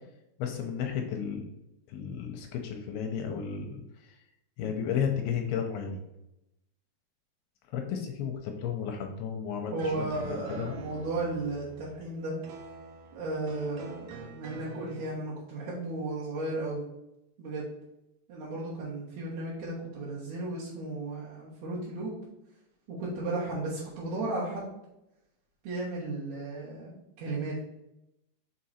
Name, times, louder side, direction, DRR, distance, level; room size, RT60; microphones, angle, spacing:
voice 1, 0.4-1.5 1.9-4.1 4.6-6.0 7.7-9.7 10.3-10.8, left 7 dB, 85° left, 3 dB, 2.6 m, -33 dB
voice 2, 9.7-12.4 13.1-16.8 17.4-17.7 18.3-22.1 22.9-24.7 25.6-27.6, right 2 dB, 60° right, -9 dB, 2.0 m, -34 dB
sound 1, 9.8-15.1, right 5 dB, 85° right, 1.7 m, -46 dB
6.1 x 3.8 x 4.2 m, 0.88 s
omnidirectional pair, 4.5 m